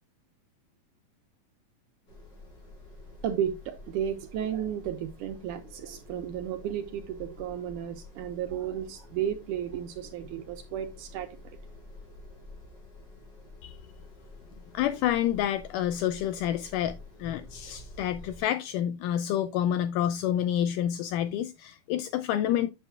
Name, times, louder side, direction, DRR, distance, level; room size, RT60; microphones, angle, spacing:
sound 1, 2.1-18.4, left 2 dB, 50° left, 4.1 m, -49 dB
voice 1, 3.2-11.3, right 9 dB, 80° right, 1.9 m, -33 dB
voice 2, 14.7-22.7, left 11 dB, 85° left, 1.9 m, -28 dB
9.0 x 7.3 x 2.3 m
omnidirectional pair, 4.2 m